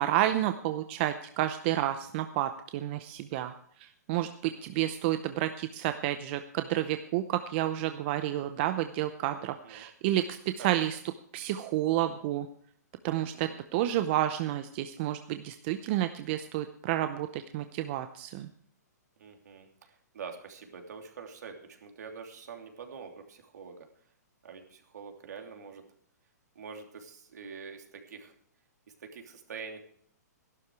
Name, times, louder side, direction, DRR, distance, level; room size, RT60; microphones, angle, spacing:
voice 1, 0.0-3.5 3.8-11.0 11.3-12.5 13.0-18.5, right 13 dB, 35° right, 9 dB, 0.7 m, -30 dB
voice 2, 4.5-5.0 9.5-9.9 10.6-10.8 11.3-11.6 13.1-13.6 19.2-23.9 24.4-25.8 26.5-28.3 29.0-29.8, right 5 dB, 70° right, 3 dB, 3.0 m, -46 dB
14.5 x 12.0 x 4.7 m, 0.64 s
hypercardioid pair, 145°, 9 cm